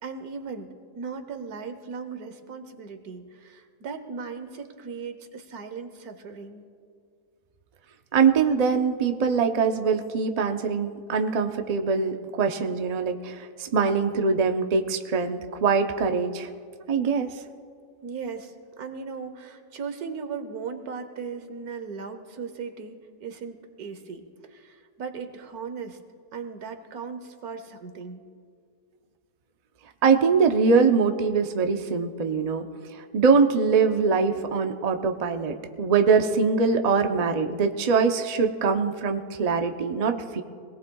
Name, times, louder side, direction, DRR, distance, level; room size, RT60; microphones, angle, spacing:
voice 1, 0.0-6.6 18.0-26.0 26.3-28.2, right 5 dB, 75° right, 8 dB, 1.5 m, -37 dB
voice 2, 8.1-16.5 16.9-17.3 30.0-32.6 33.1-40.4, right 5 dB, 50° right, 5 dB, 0.5 m, -23 dB
23.5 x 18.0 x 2.3 m, 2.2 s
omnidirectional pair, 1.7 m